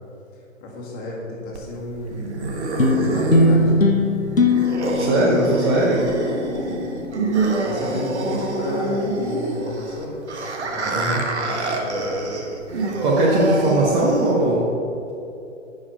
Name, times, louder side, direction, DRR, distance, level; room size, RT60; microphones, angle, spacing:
voice 1, 0.6-2.3 2.7-4.0 6.6-6.8 7.3-10.3 10.6-12.4, left 2 dB, 25° left, -3 dB, 2.0 m, -33 dB
sound 1, 1.5-14.5, right 2 dB, 60° right, 1.4 m, -26 dB
sound 2, 2.8-7.4, left 2 dB, 90° left, 1.0 m, -21 dB
voice 2, 5.0-6.0 10.8-11.2 12.7-14.7, right 1 dB, 20° right, -3 dB, 0.9 m, -20 dB
9.7 x 5.4 x 5.6 m, 2.8 s
figure-of-eight pair, 120°, 39 cm